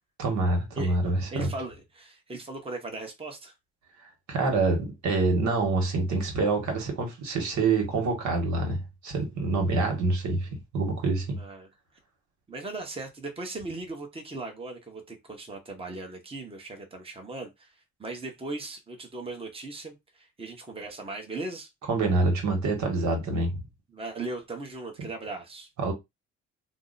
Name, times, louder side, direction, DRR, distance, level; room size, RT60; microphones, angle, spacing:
voice 1, 0.2-1.5 4.3-11.4 21.9-23.6 25.8-25.9, right 3 dB, 70° right, 1.3 m, -26 dB
voice 2, 1.3-3.5 11.4-11.7 12.5-21.7 23.9-25.7, right 2 dB, 20° right, 1.0 m, -38 dB
2.8 x 2.1 x 3.9 m
cardioid pair, 90°, 30 cm